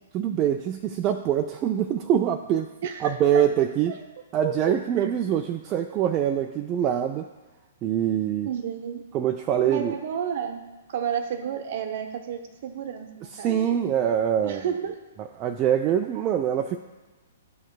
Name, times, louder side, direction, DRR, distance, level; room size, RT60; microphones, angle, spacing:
voice 1, 0.1-2.7 3.0-3.9 4.3-7.3 7.8-8.5 9.1-9.9 13.3-14.6 15.4-16.8, right 9 dB, 25° right, 4 dB, 0.3 m, -24 dB
voice 2, 2.8-3.5 3.9-4.0 4.4-5.1 8.4-9.1 9.6-13.6 14.4-15.0, right 8 dB, 50° right, 7 dB, 0.8 m, -32 dB
12.5 x 4.4 x 2.3 m, 1.2 s
figure-of-eight pair, 115°, 0 cm